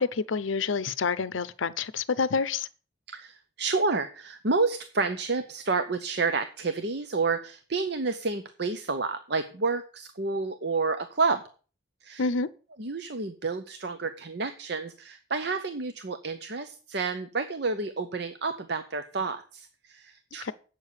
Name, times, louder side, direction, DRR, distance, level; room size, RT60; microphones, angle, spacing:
voice 1, 0.0-2.7 12.2-12.5 20.4-20.5, left 5 dB, 75° left, 0.6 m, -28 dB
voice 2, 3.1-11.4 12.0-12.3 12.8-20.5, right 4 dB, 55° right, 0.8 m, -30 dB
8.8 x 6.9 x 8.1 m
head